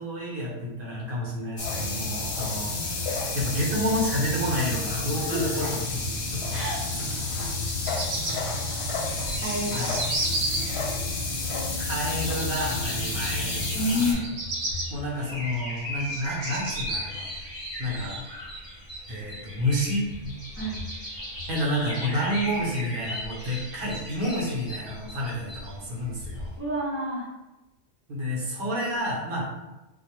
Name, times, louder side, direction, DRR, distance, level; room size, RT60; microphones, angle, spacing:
voice 1, 0.0-3.1 3.3-6.0 6.3-6.8 9.7-9.9 10.3-10.4 11.8-14.2 14.9-17.3 17.8-18.2 19.1-20.4 21.5-26.5 28.1-29.4, equal, 50° right, -4 dB, 0.8 m, -30 dB
sound 1, 1.6-14.1, left 3 dB, 65° left, 0.8 m, -30 dB
voice 2, 5.3-5.6 6.5-6.8 9.4-9.9 13.7-14.2 20.6-20.8 26.6-27.3, left 1 dB, 20° right, -9 dB, 0.4 m, -28 dB
Bird vocalization bird call bird song, 7.5-8.3 9.1-10.6 14.1-14.9 15.5-17.0, right 2 dB, 75° right, 1.0 m, -31 dB
sound 2, 9.0-26.6, equal, 25° left, 1.0 m, -38 dB
2.2 x 2.0 x 3.0 m, 1.0 s
omnidirectional pair, 1.3 m